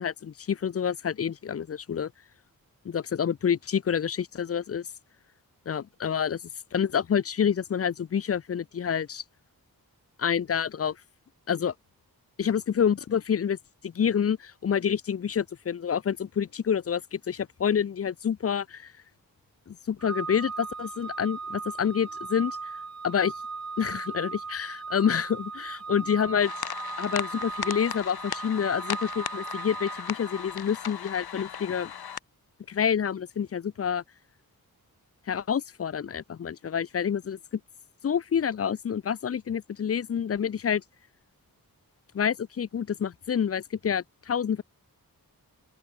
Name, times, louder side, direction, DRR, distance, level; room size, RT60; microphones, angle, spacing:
voice 1, 0.0-2.1 2.9-4.9 5.7-6.4 6.7-9.2 10.2-11.0 11.5-11.7 12.4-13.6 13.8-18.9 19.7-22.6 23.0-23.3 23.8-26.5 27.0-31.9 32.7-34.0 35.3-37.4 38.0-40.8 42.1-44.6, left 8 dB, 40° left, 0.4 m, -28 dB
Organ, 20.0-30.8, right 4 dB, 45° right, 2.9 m, -38 dB
sound 1, 26.4-32.2, left 8 dB, 85° left, 1.0 m, -37 dB
open air
wide cardioid pair, 115°, 36 cm